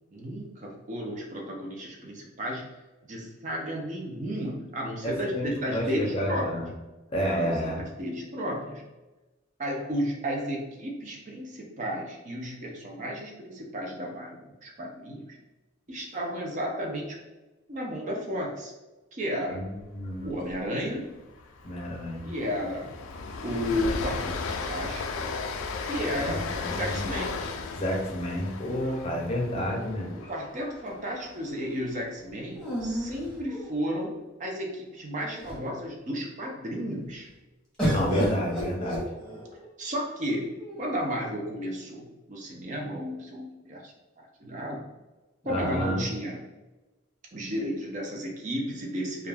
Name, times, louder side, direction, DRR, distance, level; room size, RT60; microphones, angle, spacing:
voice 1, 0.1-2.7 3.1-6.6 7.4-8.8 9.6-15.4 15.9-17.2 17.7-18.7 19.1-19.7 20.2-21.1 22.2-22.9 23.4-25.3 25.8-27.4 30.2-37.3 39.8-43.9 44.4-44.8 45.4-46.4 47.3-49.3, equal, 35° right, -1 dB, 0.5 m, -33 dB
voice 2, 5.0-6.7 7.1-7.8 19.5-20.3 21.6-22.3 26.2-26.9 27.7-30.3 37.9-39.0 45.4-46.0, equal, 30° left, -2 dB, 0.5 m, -30 dB
Train, 20.2-20.5 20.8-21.0 21.3-31.5, left 4 dB, 90° left, 0.3 m, -35 dB
sound 1, 29.5-30.6 32.6-34.1 34.8-34.9 35.2-35.8 37.8-39.7 40.6-41.3, equal, 5° left, 0.8 m, -33 dB
2.4 x 2.2 x 3.2 m, 1.1 s
head